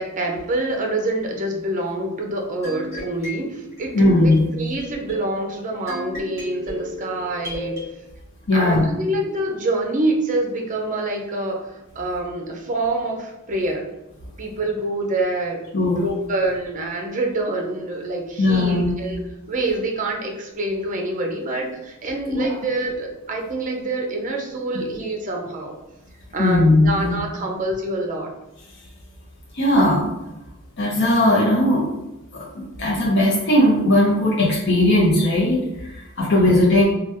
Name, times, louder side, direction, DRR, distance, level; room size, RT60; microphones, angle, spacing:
voice 1, 0.0-7.8 8.5-13.8 14.4-19.2 19.5-25.8 26.3-28.3 36.4-36.5, right 2 dB, 35° right, 1 dB, 0.6 m, -26 dB
sound 1, 2.6-7.9, equal, 15° right, 1.4 m, -36 dB
voice 2, 3.9-4.4 8.5-8.9 15.7-16.0 18.4-18.9 22.3-22.5 26.4-27.2 29.5-30.0 30.8-31.9 32.3-36.8, left 1 dB, 55° left, -5 dB, 0.7 m, -18 dB
3.3 x 2.3 x 2.9 m, 0.97 s
head